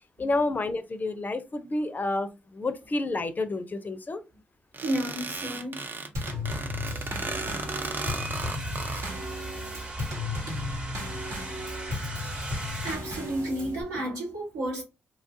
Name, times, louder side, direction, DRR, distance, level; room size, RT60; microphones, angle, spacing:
voice 1, 0.2-4.2, left 2 dB, 35° left, 0.5 m, -29 dB
sound 1, 4.7-9.1, right 3 dB, 40° right, 0.5 m, -35 dB
voice 2, 4.8-5.8 9.6-9.8 12.8-14.8, right 1 dB, 85° right, 1.3 m, -32 dB
Drum kit / Snare drum / Bass drum, 6.1-13.8, left 1 dB, 70° right, 1.1 m, -34 dB
sound 2, 6.4-13.0, right 1 dB, 20° right, 1.0 m, -40 dB
2.9 x 2.3 x 2.6 m
hypercardioid pair, 40°, 5 cm